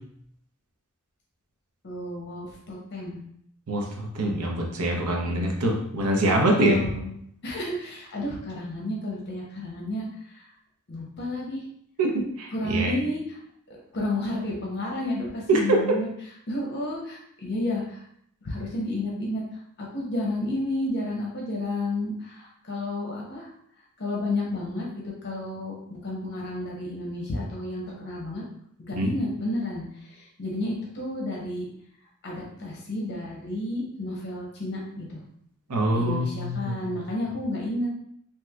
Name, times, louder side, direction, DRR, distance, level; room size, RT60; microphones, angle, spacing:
voice 1, 1.8-3.2 6.5-7.1 7.4-10.5 10.9-11.6 12.5-13.4 13.9-18.0 18.4-23.5 24.0-28.4 28.8-31.7 32.2-35.2 35.9-37.9, left 1 dB, 50° left, -2 dB, 0.7 m, -31 dB
voice 2, 3.7-6.8 12.0-12.9 15.5-15.8 28.9-29.1 35.7-36.7, right 1 dB, 90° right, 0 dB, 0.7 m, -24 dB
3.1 x 2.8 x 2.3 m, 0.68 s
head